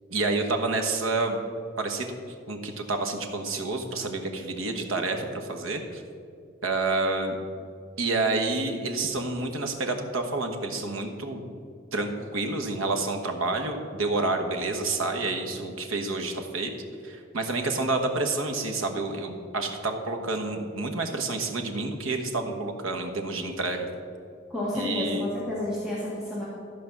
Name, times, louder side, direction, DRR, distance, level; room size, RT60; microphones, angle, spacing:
voice 1, 0.1-1.4 1.8-2.1 2.5-6.0 6.6-7.4 8.0-11.5 11.9-16.7 17.0-23.9 24.8-25.3, right 3 dB, 85° right, 5 dB, 1.3 m, -29 dB
voice 2, 24.5-26.4, left 1 dB, 5° right, -8 dB, 1.8 m, -30 dB
13.5 x 5.1 x 7.1 m, 2.4 s
head